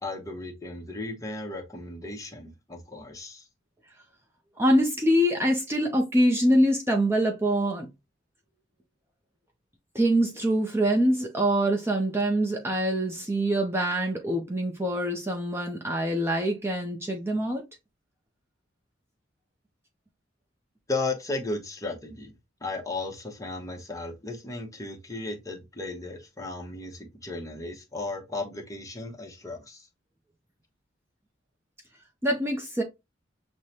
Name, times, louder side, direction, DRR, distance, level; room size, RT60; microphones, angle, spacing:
voice 1, 0.0-3.5 20.9-22.3 22.6-29.9, left 2 dB, 20° left, 0.9 m, -35 dB
voice 2, 4.6-7.9 9.9-17.6 32.2-32.8, equal, 15° right, 0.6 m, -24 dB
6.4 x 2.1 x 2.8 m
head